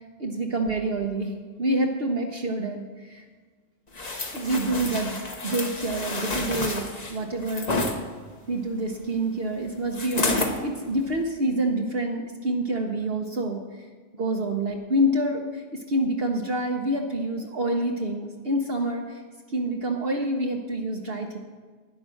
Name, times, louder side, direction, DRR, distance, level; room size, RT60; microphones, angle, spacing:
voice 1, 0.2-3.2 4.3-5.2 5.4-7.7 8.5-13.9 14.2-19.2 19.5-21.4, right 1 dB, 55° right, 1 dB, 1.2 m, -27 dB
sound 1, 4.0-8.0 9.9-10.6 11.1-11.2, left 2 dB, 35° left, 1.3 m, -29 dB
11.5 x 10.0 x 6.3 m, 1.5 s
omnidirectional pair, 1.3 m